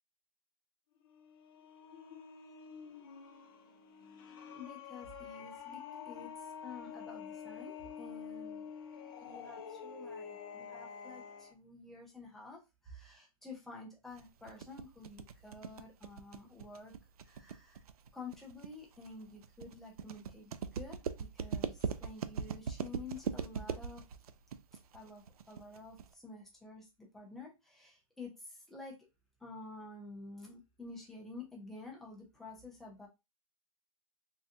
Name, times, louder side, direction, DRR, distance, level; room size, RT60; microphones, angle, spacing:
sound 1, 1.0-11.5, left 7 dB, 40° left, 0.7 m, -48 dB
voice 1, 4.5-5.8 6.1-8.7 9.1-16.9 17.2-17.8 18.1-24.0 24.9-29.0 29.4-33.1, left 3 dB, ahead, -2 dB, 0.3 m, -50 dB
sound 2, 14.2-26.1, right 7 dB, 85° right, 0.4 m, -40 dB
3.6 x 2.3 x 2.7 m, 0.24 s
hypercardioid pair, 165°, 19 cm